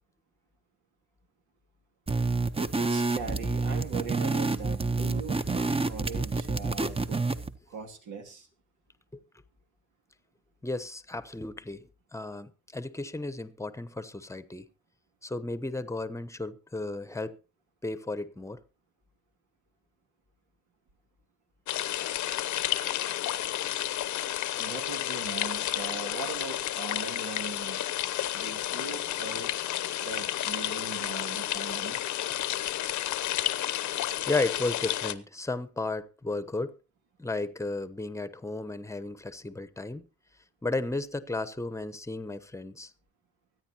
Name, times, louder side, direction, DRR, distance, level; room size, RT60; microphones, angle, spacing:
sound 1, 2.1-7.5, right 3 dB, 20° right, 0.9 m, -28 dB
voice 1, 2.8-7.3 7.7-8.5 24.6-27.8 28.3-29.5 30.0-32.1, right 5 dB, 80° right, 2.6 m, -40 dB
voice 2, 10.6-14.7 15.2-17.4 17.8-18.6 34.3-36.7 37.2-40.1 40.6-42.9, left 2 dB, 10° left, 1.0 m, -34 dB
sound 2, 21.7-35.1, left 13 dB, 75° left, 0.9 m, -31 dB
24.0 x 9.3 x 2.9 m
cardioid pair, 90°, 30 cm